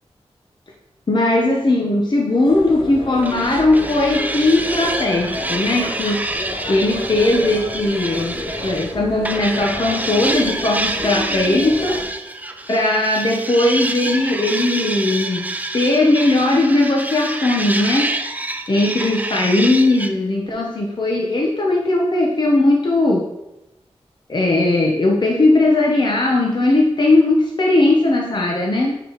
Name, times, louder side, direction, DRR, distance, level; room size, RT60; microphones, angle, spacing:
voice 1, 1.1-6.2 6.7-12.0 12.7-15.5 15.7-18.1 18.7-23.2 24.3-29.0, left 2 dB, 45° left, -1 dB, 0.9 m, -18 dB
sound 1, 2.4-12.0, left 1 dB, 65° left, 2.4 m, -31 dB
sound 2, 3.2-8.9 9.3-20.1, right 2 dB, 15° right, 0.5 m, -27 dB
7.7 x 5.0 x 3.0 m, 0.91 s
wide cardioid pair, 85°, 11 cm